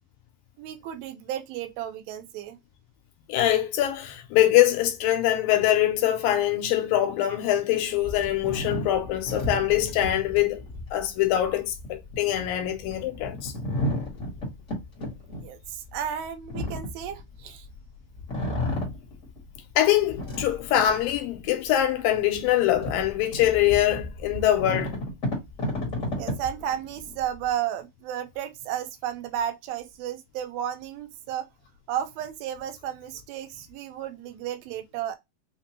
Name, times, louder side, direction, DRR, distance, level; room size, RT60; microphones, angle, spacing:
voice 1, 0.6-2.6 15.4-17.7 26.1-31.5 31.9-35.2, right 10 dB, 90° right, 2.4 m, -33 dB
voice 2, 3.3-10.6 10.9-13.5 19.8-24.9, left 12 dB, 80° left, 2.3 m, -23 dB
sound 1, 8.0-17.8 18.1-19.6 20.0-21.3 21.8-21.9 22.3-27.4, left 1 dB, 50° left, 0.9 m, -33 dB
5.6 x 2.2 x 2.9 m
omnidirectional pair, 4.2 m